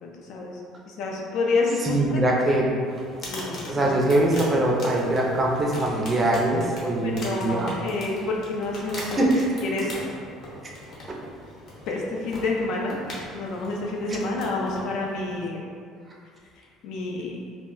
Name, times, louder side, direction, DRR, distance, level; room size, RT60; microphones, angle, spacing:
voice 1, 0.0-2.2 3.3-3.9 7.0-9.2 9.7-9.9 11.9-13.0 13.3-15.6 16.5-17.4, left 3 dB, 65° left, -1 dB, 0.3 m, -29 dB
voice 2, 1.8-2.7 3.7-7.8 9.0-9.5 11.1-11.2 14.1-14.2, right 1 dB, 20° right, -2 dB, 0.4 m, -23 dB
sound 1, 2.9-15.5, left 1 dB, 50° left, 0.8 m, -41 dB
2.1 x 2.0 x 3.8 m, 2.3 s
cardioid pair, 135°, 0 cm